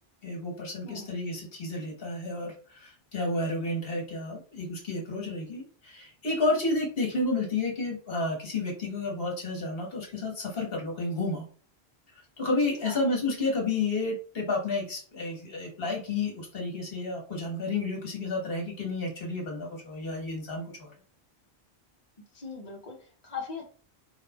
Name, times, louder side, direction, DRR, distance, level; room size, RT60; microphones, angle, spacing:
voice 1, 0.2-11.4 12.4-20.9, left 2 dB, 60° left, 0 dB, 1.4 m, -31 dB
voice 2, 0.8-1.2 12.8-13.0 22.3-23.7, left 5 dB, 40° left, -2 dB, 1.1 m, -40 dB
4.5 x 2.4 x 3.4 m, 0.41 s
omnidirectional pair, 1.1 m